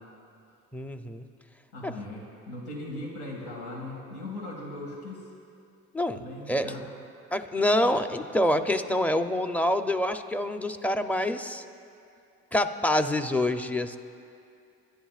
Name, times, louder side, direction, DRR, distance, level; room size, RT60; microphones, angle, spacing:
voice 1, 0.7-1.3 1.8-1.9 5.9-6.2 6.5-6.7 7.3-11.6 12.5-14.0, left 1 dB, 5° left, 8 dB, 0.6 m, -26 dB
voice 2, 1.7-5.3 6.1-6.8, left 1 dB, 85° left, -2 dB, 2.1 m, -39 dB
28.0 x 10.5 x 2.4 m, 2.5 s
cardioid pair, 90°, 30 cm